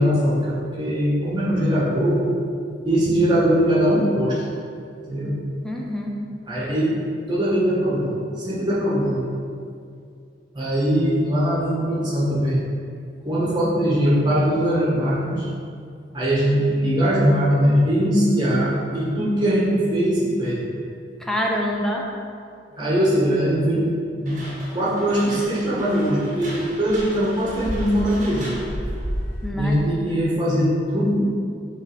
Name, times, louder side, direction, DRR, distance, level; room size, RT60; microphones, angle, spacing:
voice 1, 0.0-2.2 2.8-4.4 5.1-5.4 6.5-6.9 7.3-9.3 10.5-12.6 13.2-15.5 16.1-20.7 22.8-23.9 24.2-24.4 24.7-28.6 29.6-31.2, equal, 25° right, -7 dB, 1.7 m, -21 dB
voice 2, 5.6-6.2 21.2-22.1 22.7-22.8 24.7-24.8 29.4-30.0, equal, 5° left, -1 dB, 0.7 m, -26 dB
sound 1, 24.3-29.5, equal, 45° right, 1.6 m, -33 dB
6.7 x 3.9 x 5.7 m, 2.3 s
head